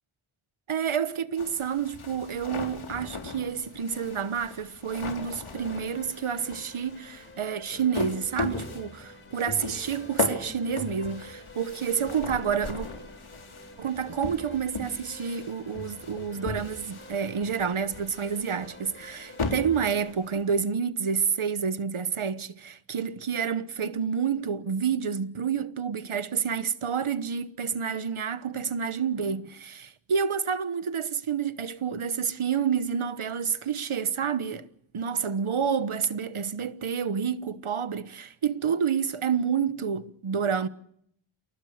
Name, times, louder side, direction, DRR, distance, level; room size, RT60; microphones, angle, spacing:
voice 1, 0.7-12.9 13.8-34.7 34.9-40.7, right 7 dB, 85° right, 1.2 m, -29 dB
sound 1, 1.4-20.6, left 3 dB, 80° left, 3.8 m, -38 dB
sound 2, 5.5-20.1, left 1 dB, 25° left, 3.7 m, -49 dB
28.5 x 19.5 x 6.6 m
wide cardioid pair, 85°, 49 cm